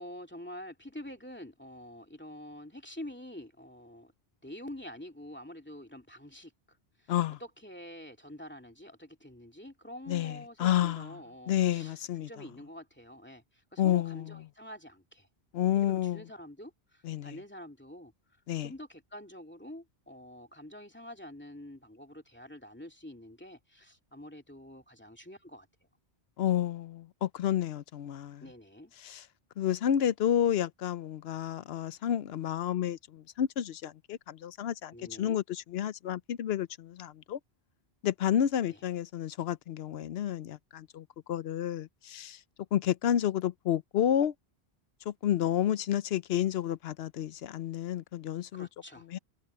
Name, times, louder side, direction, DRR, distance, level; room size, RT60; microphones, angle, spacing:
voice 1, 0.0-4.1 4.4-7.1 7.4-15.3 15.6-18.1 18.6-25.7 28.4-28.9 34.9-35.4 38.7-38.8 48.5-49.1, left 1 dB, 10° left, 2.5 m, -47 dB
voice 2, 7.1-7.4 10.1-11.2 11.5-12.3 13.8-14.3 15.5-16.2 17.0-17.4 18.5-18.7 26.4-28.4 29.0-29.2 29.6-37.4 38.0-42.4 42.7-44.3 45.1-48.7 49.1-49.2, left 10 dB, 75° left, 0.9 m, -30 dB
omnidirectional pair, 1.1 m